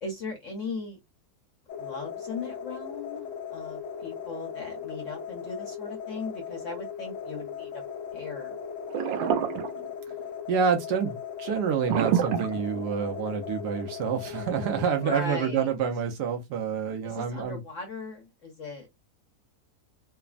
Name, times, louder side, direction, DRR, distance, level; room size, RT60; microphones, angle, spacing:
voice 1, 0.0-1.0 1.8-7.8 8.1-8.6 14.9-15.7 17.0-18.9, left 3 dB, 55° left, 1.0 m, -38 dB
sound 1, 1.7-15.1, left 7 dB, 75° left, 0.7 m, -38 dB
sound 2, 8.9-10.2 11.9-13.2, right 9 dB, 90° right, 1.3 m, -27 dB
voice 2, 10.5-17.6, right 6 dB, 75° right, 1.1 m, -28 dB
3.2 x 2.0 x 2.3 m
omnidirectional pair, 2.0 m